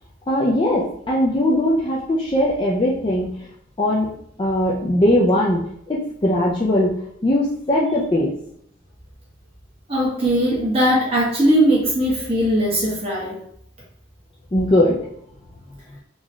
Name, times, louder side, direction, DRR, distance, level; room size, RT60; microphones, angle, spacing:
voice 1, 0.3-3.4 3.8-4.1 4.4-8.3 14.5-15.0, left 1 dB, 25° left, -5 dB, 0.4 m, -20 dB
voice 2, 9.9-13.4, equal, 30° right, -5 dB, 1.1 m, -19 dB
3.8 x 2.4 x 3.1 m, 0.70 s
head